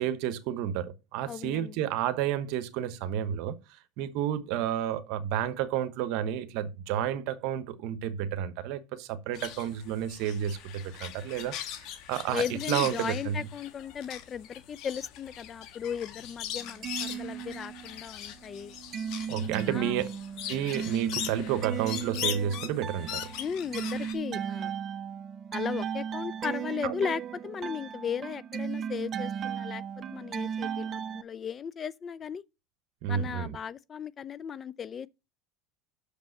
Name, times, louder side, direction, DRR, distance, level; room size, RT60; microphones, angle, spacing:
voice 1, 0.0-13.4 19.3-20.1 20.5-23.3 26.8-26.9 33.0-33.6, right 10 dB, 65° right, 1.0 m, -31 dB
voice 2, 1.3-1.8 11.4-11.5 12.3-18.8 19.7-20.0 23.4-24.7 25.5-32.4 33.1-35.1, left 7 dB, 30° left, 0.4 m, -36 dB
sound 1, 9.3-24.1, left 10 dB, 55° left, 1.3 m, -40 dB
sound 2, 16.6-18.0 18.4-31.2, right 8 dB, 35° right, 0.7 m, -36 dB
6.7 x 5.2 x 6.4 m
supercardioid pair, 125°, 0 cm